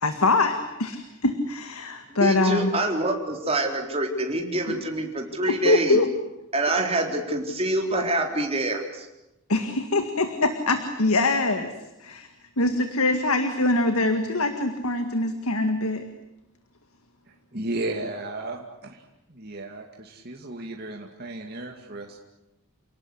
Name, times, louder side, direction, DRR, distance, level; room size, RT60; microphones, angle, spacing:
voice 1, 0.0-2.7 4.7-4.8 5.4-6.1 9.5-11.7 12.0-12.3 12.6-16.0, left 2 dB, 75° left, 7 dB, 2.0 m, -23 dB
voice 2, 2.1-6.0 6.5-9.1, right 2 dB, 25° right, 2 dB, 4.0 m, -26 dB
voice 3, 17.3-19.0 19.3-22.2, right 2 dB, 45° right, 1 dB, 2.4 m, -34 dB
29.0 x 18.0 x 10.0 m, 0.95 s
head